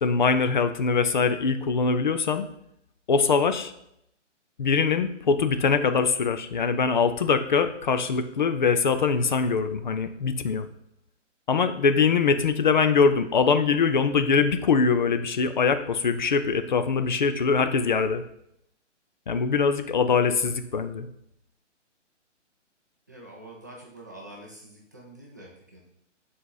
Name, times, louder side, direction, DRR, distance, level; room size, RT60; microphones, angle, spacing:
voice 1, 0.0-2.5 3.1-3.7 4.6-10.7 11.5-18.2 19.3-21.1, left 5 dB, 40° left, 10 dB, 0.5 m, -23 dB
voice 2, 23.1-25.8, right 1 dB, 15° right, -3 dB, 0.5 m, -46 dB
7.5 x 4.1 x 3.9 m, 0.77 s
hypercardioid pair, 165°, 37 cm